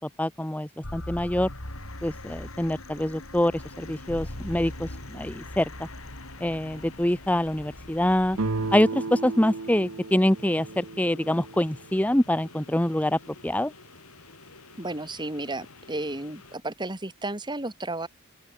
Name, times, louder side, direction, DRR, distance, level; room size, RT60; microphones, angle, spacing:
voice 1, 0.2-1.5 2.0-3.5 3.8-5.9 6.4-8.4 8.7-13.7, left 1 dB, 5° left, 0.7 m, -25 dB
sound 1, 0.8-8.8, left 1 dB, 70° left, 5.8 m, -40 dB
sound 2, 3.6-16.6, left 3 dB, 85° left, 4.4 m, -50 dB
sound 3, 8.3-12.0, right 3 dB, 75° right, 1.0 m, -34 dB
voice 2, 14.8-18.1, right 2 dB, 20° right, 2.0 m, -33 dB
open air
head